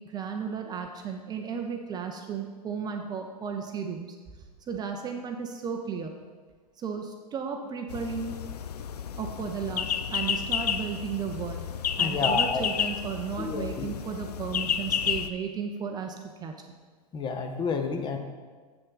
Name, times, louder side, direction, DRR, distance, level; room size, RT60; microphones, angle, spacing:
voice 1, 0.0-4.2 4.7-6.1 6.8-8.4 9.1-11.6 12.0-16.6, right 6 dB, 20° right, 4 dB, 0.5 m, -34 dB
sound 1, 7.9-15.3, left 8 dB, 70° left, 0.5 m, -31 dB
voice 2, 12.0-12.6 13.4-13.9 17.1-18.2, left 4 dB, 20° left, 5 dB, 0.7 m, -30 dB
7.7 x 6.3 x 3.9 m, 1.5 s
figure-of-eight pair, 100°, 21 cm